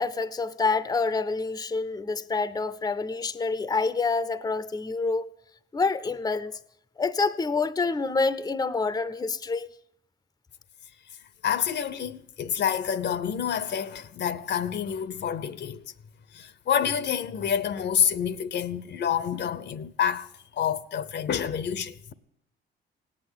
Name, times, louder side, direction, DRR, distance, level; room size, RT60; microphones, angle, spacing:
voice 1, 0.0-5.3 5.7-6.5 7.0-9.7, left 4 dB, 20° left, 0.7 m, -27 dB
voice 2, 11.4-15.8 16.3-22.1, left 8 dB, 60° left, 0.8 m, -28 dB
17.0 x 8.6 x 9.8 m
cardioid pair, 90°, 20 cm